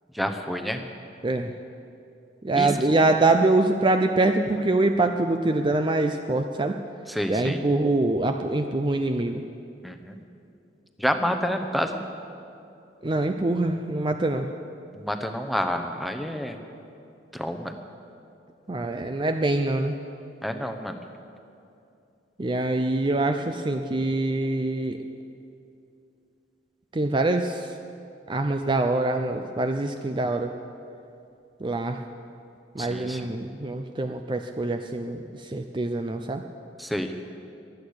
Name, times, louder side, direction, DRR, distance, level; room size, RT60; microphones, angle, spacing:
voice 1, 0.1-0.8 2.5-2.7 7.1-7.6 9.8-10.2 11.0-12.0 14.9-16.6 17.3-17.8 20.4-21.0 32.8-33.3 36.8-37.1, equal, ahead, 6 dB, 0.9 m, -28 dB
voice 2, 1.2-1.5 2.4-6.8 7.3-9.4 13.0-14.5 18.7-20.0 22.4-25.0 26.9-27.7 28.3-30.5 31.6-32.0 32.8-36.4, right 2 dB, 25° right, 6 dB, 0.5 m, -24 dB
23.0 x 8.8 x 6.5 m, 2.6 s
head